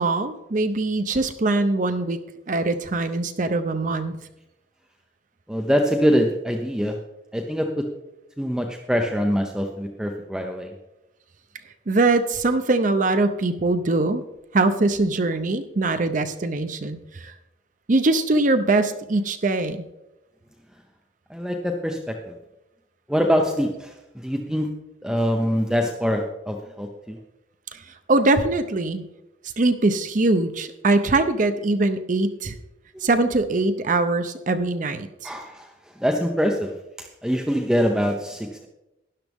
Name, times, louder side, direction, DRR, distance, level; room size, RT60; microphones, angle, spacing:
voice 1, 0.0-2.2 2.5-4.2 11.9-14.2 14.5-17.3 17.9-19.8 27.7-29.0 29.6-32.6 33.0-35.3, right 2 dB, 45° right, 9 dB, 0.6 m, -22 dB
voice 2, 5.5-7.0 7.3-7.8 8.4-10.7 21.3-22.2 23.1-24.7 25.0-27.2 35.2-35.7 36.0-38.7, equal, 5° right, 2 dB, 0.7 m, -24 dB
12.5 x 11.0 x 3.5 m, 0.94 s
head